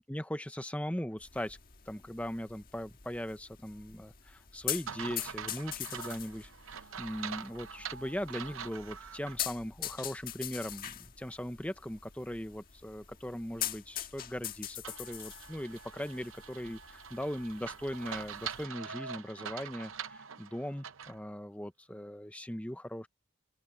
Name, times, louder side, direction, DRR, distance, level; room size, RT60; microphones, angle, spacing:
voice 1, 0.0-1.6 1.9-23.1, equal, 5° left, 0.8 m, -39 dB
sound 1, 1.2-18.6, left 11 dB, 45° left, 1.6 m, -43 dB
sound 2, 4.9-9.4 9.8-9.9 14.8-21.2, right 7 dB, 75° right, 0.7 m, -44 dB
open air
head